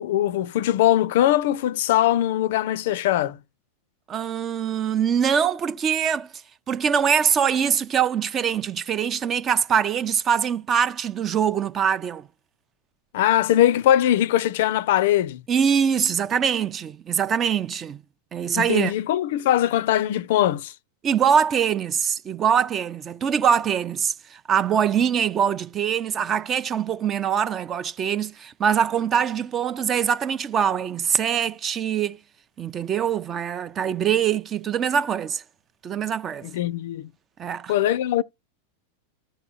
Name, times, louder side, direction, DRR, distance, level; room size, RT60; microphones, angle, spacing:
voice 1, 0.0-3.4 13.1-15.4 18.5-20.7 36.5-37.1 37.7-38.2, left 12 dB, 55° left, 0.5 m, -21 dB
voice 2, 4.1-6.3 6.7-12.3 15.5-18.0 18.3-18.9 21.0-32.2 32.6-35.4 35.8-36.5 37.4-37.7, right 8 dB, 25° right, 0.5 m, -23 dB
14.0 x 4.8 x 2.4 m
figure-of-eight pair, 90°, 0 cm